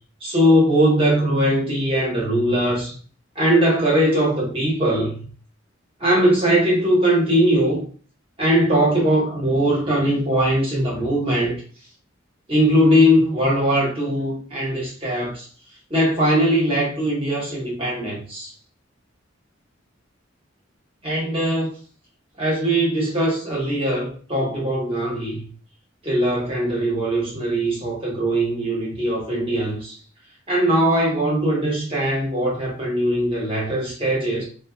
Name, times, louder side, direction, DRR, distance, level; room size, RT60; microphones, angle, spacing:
voice 1, 0.2-2.9 3.4-5.2 6.0-7.8 8.4-11.5 12.5-15.4 15.9-18.5 21.0-21.7 22.4-25.4 26.0-29.9 30.5-34.4, equal, 30° right, -5 dB, 1.2 m, -20 dB
2.6 x 2.3 x 2.2 m, 0.41 s
head